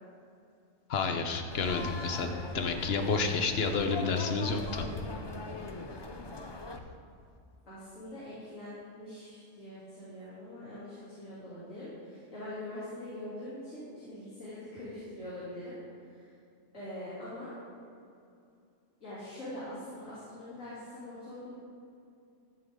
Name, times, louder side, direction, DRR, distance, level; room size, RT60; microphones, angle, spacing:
voice 1, 0.9-4.9, left 4 dB, 55° left, 5 dB, 1.1 m, -30 dB
sound 1, 1.5-6.8, left 2 dB, 30° left, 0.4 m, -41 dB
voice 2, 7.7-15.8 16.0-16.3 16.7-17.5 19.0-21.5, left 1 dB, 85° left, -11 dB, 3.4 m, -43 dB
14.5 x 8.5 x 3.8 m, 2.5 s
omnidirectional pair, 1.3 m